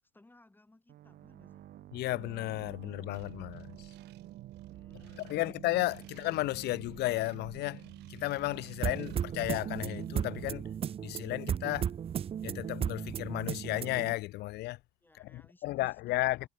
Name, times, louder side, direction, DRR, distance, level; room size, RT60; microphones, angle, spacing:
voice 1, 0.1-1.6 4.7-5.6 6.1-6.2 15.0-16.5, left 2 dB, 10° left, 3.9 m, -62 dB
sound 1, 0.9-12.4, right 13 dB, 65° right, 3.4 m, -51 dB
voice 2, 1.9-3.9 5.2-7.8 8.1-10.7 11.0-11.9 12.4-14.8 15.2-16.5, left 18 dB, 75° left, 0.5 m, -34 dB
sound 2, 3.1-10.5, right 18 dB, 85° right, 4.4 m, -54 dB
sound 3, 8.8-14.1, right 8 dB, 35° right, 0.4 m, -35 dB
cardioid pair, 110°, 17 cm